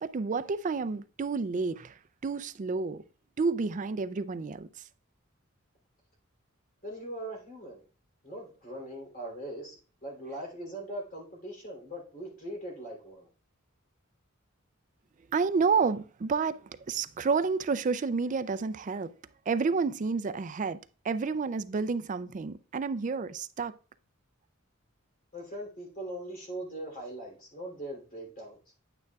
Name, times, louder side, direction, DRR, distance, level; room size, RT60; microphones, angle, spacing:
voice 1, 0.0-3.0 3.4-4.9 15.3-19.1 19.5-23.7, right 4 dB, 40° right, 0.4 m, -30 dB
voice 2, 6.8-7.8 8.2-13.3 25.3-28.6, right 1 dB, 45° left, 3.2 m, -41 dB
9.4 x 8.9 x 2.3 m
head